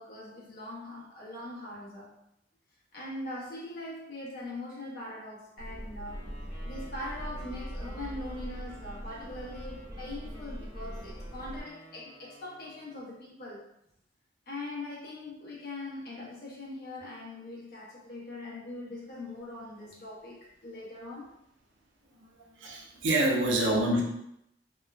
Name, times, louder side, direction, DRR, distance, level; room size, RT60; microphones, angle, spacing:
voice 1, 0.0-2.1 2.9-6.3 6.6-13.7 14.5-21.3, left 2 dB, 55° left, -4 dB, 0.6 m, -41 dB
sound 1, 5.6-11.6, equal, 15° right, 0.6 m, -41 dB
Wind instrument woodwind instrument, 6.1-13.2, right 1 dB, 45° right, 1.1 m, -53 dB
voice 2, 22.2-24.0, right 1 dB, 90° right, -1 dB, 0.6 m, -27 dB
3.0 x 2.0 x 2.3 m, 0.77 s
head